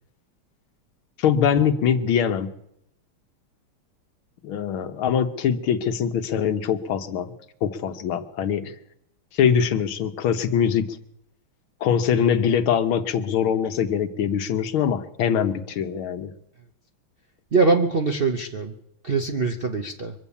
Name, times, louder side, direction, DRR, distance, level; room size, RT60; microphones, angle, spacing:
voice 1, 1.2-2.5 4.4-7.3 7.6-8.7 9.3-10.9 11.8-16.3, left 8 dB, 85° left, 8 dB, 1.8 m, -23 dB
voice 2, 17.5-18.7 19.0-20.1, right 3 dB, 60° right, 4 dB, 0.5 m, -22 dB
23.5 x 8.3 x 7.1 m, 0.77 s
omnidirectional pair, 2.3 m